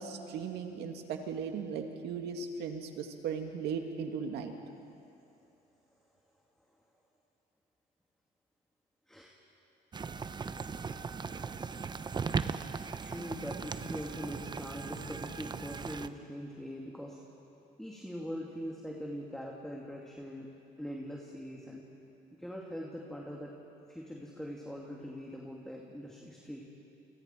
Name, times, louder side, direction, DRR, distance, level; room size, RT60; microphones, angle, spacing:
voice 1, 0.0-4.5, right 6 dB, 80° right, 4 dB, 2.2 m, -37 dB
sound 1, 9.9-16.1, right 5 dB, 25° right, 0.7 m, -38 dB
voice 2, 13.0-17.2 17.8-21.9 22.4-23.5 23.9-26.7, equal, 5° left, -2 dB, 2.4 m, -42 dB
29.5 x 24.5 x 4.6 m, 2.7 s
cardioid pair, 110°, 17 cm